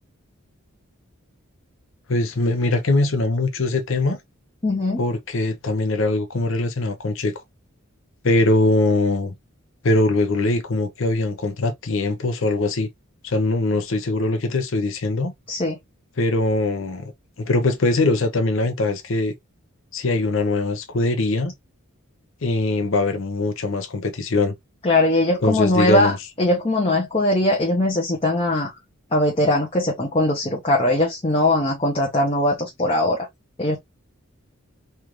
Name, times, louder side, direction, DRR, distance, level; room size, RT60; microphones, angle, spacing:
voice 1, 2.1-4.2 5.0-7.3 8.2-9.3 9.8-12.9 13.2-15.3 16.2-17.1 17.4-19.3 19.9-21.5 22.4-24.5 25.4-26.2, left 2 dB, 65° left, 0.6 m, -22 dB
voice 2, 4.6-5.0 15.5-15.8 24.8-28.7 29.1-33.3 33.6-33.8, left 1 dB, 25° left, 0.7 m, -20 dB
3.3 x 2.5 x 3.0 m
head